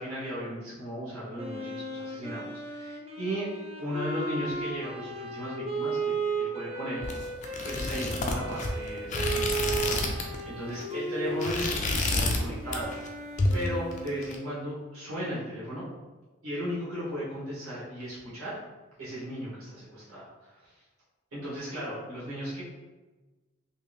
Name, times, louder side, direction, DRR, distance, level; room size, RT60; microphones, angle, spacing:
voice 1, 0.0-3.5 3.8-7.0 7.6-13.2 13.5-15.9 16.4-18.6 19.0-20.7 21.3-22.6, equal, 75° right, -9 dB, 1.3 m, -36 dB
Wind instrument woodwind instrument, 1.3-14.8, right 3 dB, 30° right, 0.5 m, -35 dB
sound 1, 7.0-10.4 10.7-10.9 11.3-12.4 12.7-13.1 13.4-14.3, left 2 dB, 35° left, 0.4 m, -29 dB
3.1 x 2.7 x 3.3 m, 1.2 s
head